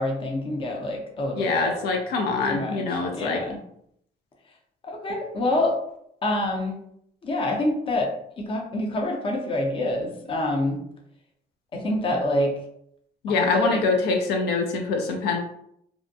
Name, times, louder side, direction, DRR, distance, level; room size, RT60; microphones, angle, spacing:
voice 1, 0.0-1.8 2.5-2.8 3.1-3.6 4.9-5.7 6.2-6.8 7.2-8.1 8.4-10.8 11.7-12.5 13.3-13.8, left 1 dB, 30° left, 1 dB, 0.6 m, -26 dB
voice 2, 1.3-3.4 13.2-15.4, left 3 dB, 80° left, 2 dB, 0.5 m, -24 dB
2.5 x 2.1 x 2.6 m, 0.73 s
cardioid pair, 110°, 17 cm